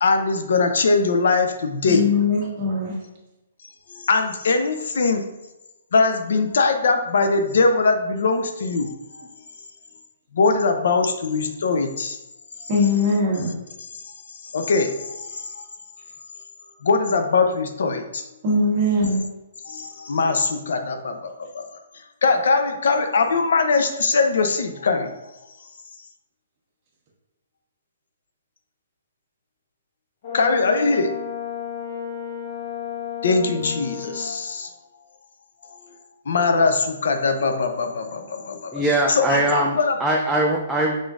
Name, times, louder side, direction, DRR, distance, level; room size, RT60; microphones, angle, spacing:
voice 1, 0.0-2.0 3.9-5.2 5.9-8.9 10.3-12.2 14.5-15.4 16.8-18.2 19.7-21.6 22.2-25.1 30.3-31.1 33.2-34.7 36.3-38.7 39.1-40.0, left 4 dB, 70° left, 6 dB, 0.5 m, -21 dB
voice 2, 1.8-2.9 12.7-13.5 18.4-19.2, left 2 dB, 30° right, -4 dB, 1.1 m, -21 dB
Brass instrument, 30.2-34.3, left 8 dB, 45° left, 1.2 m, -32 dB
voice 3, 38.7-41.0, right 1 dB, 5° right, -2 dB, 0.3 m, -21 dB
5.1 x 3.7 x 2.4 m, 1.0 s
hypercardioid pair, 160°, 0 cm